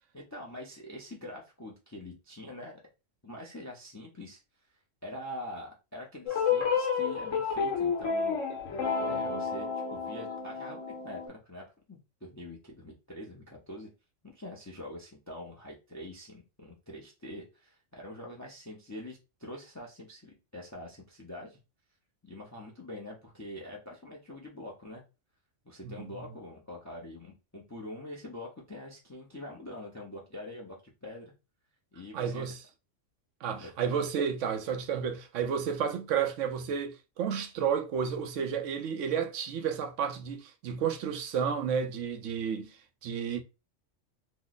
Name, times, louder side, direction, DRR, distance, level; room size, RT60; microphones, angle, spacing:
voice 1, 0.1-2.8 3.2-4.4 5.0-8.4 9.0-13.9 14.2-21.6 22.2-25.0 25.6-30.8 31.0-31.3 31.9-32.5 33.6-33.7, left 1 dB, 20° left, 0.5 m, -44 dB
sound 1, 6.3-11.3, left 6 dB, 85° left, 1.2 m, -30 dB
voice 2, 25.8-26.3 32.1-32.6 33.4-42.7 43.0-43.4, right 7 dB, 75° right, 0.9 m, -31 dB
3.1 x 2.0 x 3.9 m
omnidirectional pair, 1.3 m